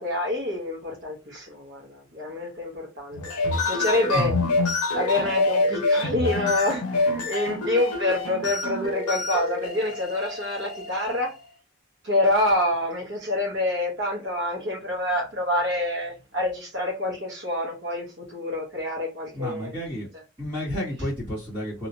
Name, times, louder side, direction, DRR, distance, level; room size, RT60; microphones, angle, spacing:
voice 1, 0.0-4.3 4.9-11.3 12.0-19.7, left 1 dB, 50° right, 1.1 m, -27 dB
sound 1, 3.1-11.4, left 2 dB, 80° left, 0.6 m, -27 dB
voice 2, 19.3-20.1 20.4-21.9, left 1 dB, 20° right, 1.7 m, -30 dB
3.0 x 2.9 x 2.7 m
head